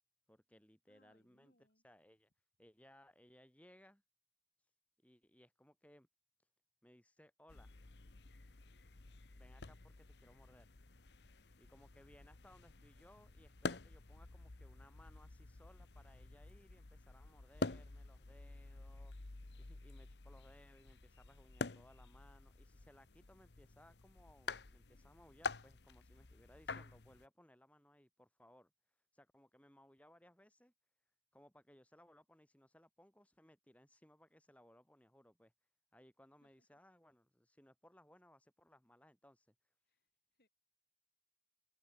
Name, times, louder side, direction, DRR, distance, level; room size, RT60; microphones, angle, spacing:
voice 1, 0.3-2.3 2.6-4.0 5.0-6.1 6.8-7.7 9.3-10.7 11.6-19.1 19.6-28.7 29.1-30.7 31.3-35.5 35.9-39.5, left 1 dB, 10° left, 3.3 m, -65 dB
voice 2, 0.9-1.8 36.4-36.5 39.9-40.1 40.3-40.5, left 1 dB, 60° left, 7.2 m, -75 dB
sound 1, 7.5-27.3, left 3 dB, 80° left, 1.1 m, -48 dB
head